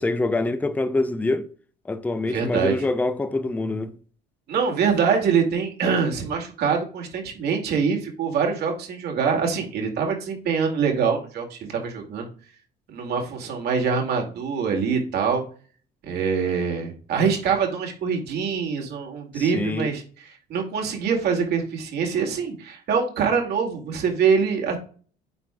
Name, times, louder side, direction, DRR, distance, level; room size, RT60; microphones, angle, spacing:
voice 1, 0.0-1.4 1.9-3.9 19.3-19.9, left 2 dB, 10° left, 0.5 m, -25 dB
voice 2, 2.3-2.8 4.5-12.3 12.9-15.4 16.0-20.0 20.5-24.8, right 6 dB, 70° right, 2.2 m, -24 dB
9.3 x 4.6 x 2.3 m
cardioid pair, 110°, 17 cm